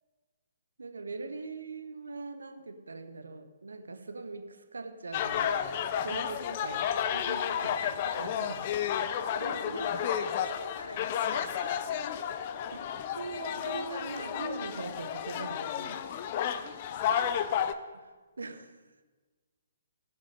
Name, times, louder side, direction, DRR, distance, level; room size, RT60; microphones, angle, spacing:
voice 1, 0.8-5.7 6.0-10.1 12.7-12.9 13.2-16.0 17.9-18.1 18.4-18.7, right 3 dB, 75° right, 1.0 m, -41 dB
sound 1, 5.1-17.7, left 9 dB, 40° left, 0.6 m, -32 dB
voice 2, 9.4-11.7, left 1 dB, 80° left, 1.5 m, -45 dB
16.0 x 6.6 x 5.3 m
figure-of-eight pair, 130°, 0 cm